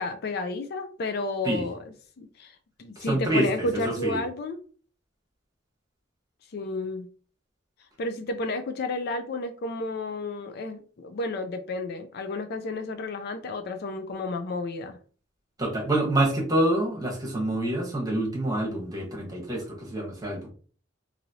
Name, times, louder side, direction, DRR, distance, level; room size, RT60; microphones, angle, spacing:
voice 1, 0.0-1.8 2.2-4.6 6.5-7.1 8.0-15.0, left 2 dB, 55° left, 8 dB, 0.4 m, -31 dB
voice 2, 3.0-4.2 15.6-20.5, right 1 dB, 20° right, -2 dB, 1.1 m, -27 dB
3.1 x 2.6 x 2.7 m, 0.41 s
head